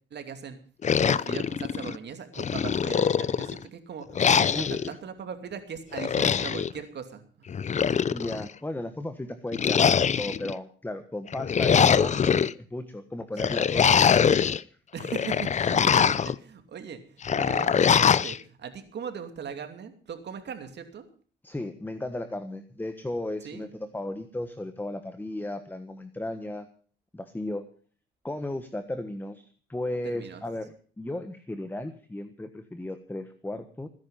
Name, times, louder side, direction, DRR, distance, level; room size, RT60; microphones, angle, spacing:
voice 1, 0.1-0.6 1.0-7.5 14.9-21.1 23.4-23.7 30.0-30.4, right 7 dB, 60° right, 7 dB, 2.7 m, -39 dB
sound 1, 0.8-2.0 2.4-3.6 4.2-4.9 5.9-6.7 7.5-8.5 9.5-10.5 11.3-12.5 13.4-14.6 15.0-16.4 17.2-18.4, left 7 dB, 35° left, 0.6 m, -23 dB
voice 2, 4.5-4.9 8.1-12.4 12.7-14.0 14.6-14.7 21.4-26.7 27.1-27.7 28.2-33.9, left 1 dB, 10° left, 10 dB, 1.4 m, -35 dB
19.0 x 10.5 x 5.7 m, 0.43 s
cardioid pair, 90°, 20 cm